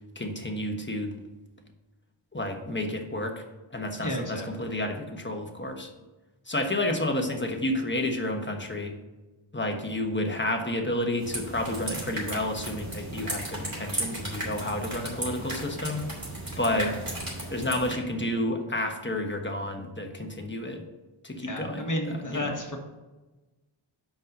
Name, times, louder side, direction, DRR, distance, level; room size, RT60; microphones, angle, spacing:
voice 1, 0.1-1.2 2.3-3.4 3.7-5.9 6.5-8.9 9.5-16.0 16.6-16.9 17.5-20.8 21.2-22.5, left 1 dB, 25° left, 3 dB, 1.3 m, -30 dB
voice 2, 4.0-4.8 16.7-16.9 21.4-22.8, equal, 40° left, 1 dB, 1.6 m, -33 dB
sound 1, 11.2-17.9, right 1 dB, 45° right, 2.7 m, -35 dB
5.8 x 5.3 x 6.6 m, 1.1 s
wide cardioid pair, 45°, 49 cm